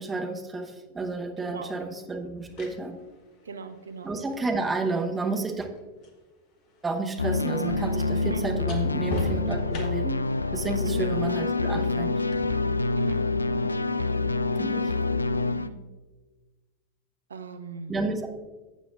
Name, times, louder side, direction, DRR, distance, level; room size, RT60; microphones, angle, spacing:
voice 1, 0.0-3.0 4.0-5.7 6.8-10.2 10.5-12.2 14.6-14.9 17.9-18.3, right 3 dB, 15° right, 4 dB, 1.0 m, -31 dB
sound 1, 1.0-1.1 2.2-6.2 6.5-10.3 12.3-12.5, left 3 dB, 40° left, 1.4 m, -39 dB
voice 2, 1.4-1.9 3.4-4.2 8.2-8.4 10.8-11.1 13.0-13.7 15.5-15.8 17.3-18.0, right 5 dB, 70° right, 9 dB, 0.6 m, -39 dB
sound 2, 7.2-15.7, left 3 dB, 80° left, 0.3 m, -27 dB
14.5 x 8.2 x 2.5 m, 1.3 s
figure-of-eight pair, 90°, 0 cm